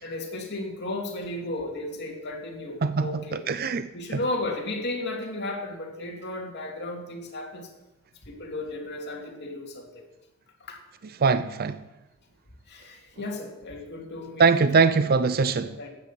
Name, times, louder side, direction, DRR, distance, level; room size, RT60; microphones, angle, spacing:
voice 1, 0.0-3.4 3.9-7.7 8.3-10.0 10.7-10.8 12.7-14.7 15.6-15.9, left 2 dB, 55° left, 2.8 m, -34 dB
voice 2, 3.5-3.9 11.2-11.8 14.4-15.8, right 4 dB, 45° right, 0.5 m, -21 dB
13.5 x 9.4 x 7.6 m
head